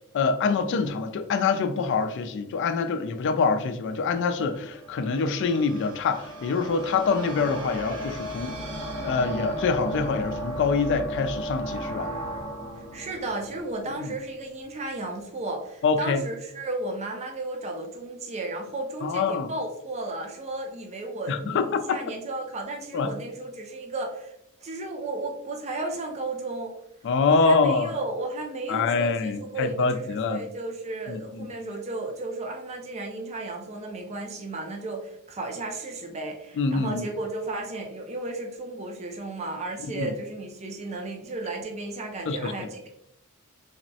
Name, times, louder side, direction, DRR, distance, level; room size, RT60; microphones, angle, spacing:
voice 1, 0.1-8.6 9.0-12.1 14.0-14.1 15.8-16.2 19.0-19.5 21.3-22.0 22.9-23.1 27.0-27.9 28.7-30.4 31.1-31.5 36.6-37.1 39.9-40.1 42.3-42.5, left 4 dB, 55° left, 8 dB, 0.3 m, -25 dB
sound 1, 4.2-14.5, right 1 dB, 85° right, 0.9 m, -35 dB
voice 2, 12.7-24.3 24.6-26.7 27.3-42.9, right 2 dB, 30° right, 2 dB, 0.4 m, -34 dB
3.4 x 2.0 x 2.6 m, 0.78 s
head